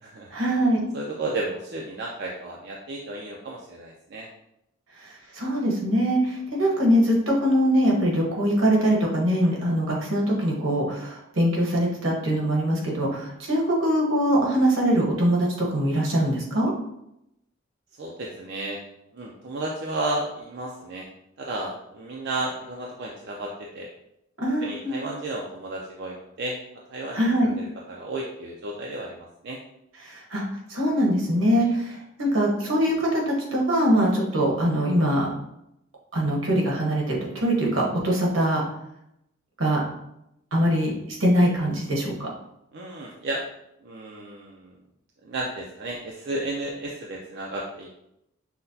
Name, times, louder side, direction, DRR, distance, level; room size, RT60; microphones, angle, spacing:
voice 1, 0.3-0.8 5.0-16.7 24.4-25.0 27.1-27.5 30.0-30.4 30.7-35.3 36.1-38.6 39.6-39.8 40.5-42.3, equal, 80° right, -2 dB, 1.1 m, -23 dB
voice 2, 0.9-4.3 18.0-18.8 19.1-21.1 21.4-23.9 24.6-26.6 26.9-29.6 31.6-31.7 42.7-43.4 43.8-44.7 45.2-48.0, right 2 dB, 55° right, -2 dB, 0.4 m, -33 dB
5.7 x 2.2 x 2.7 m, 0.81 s
head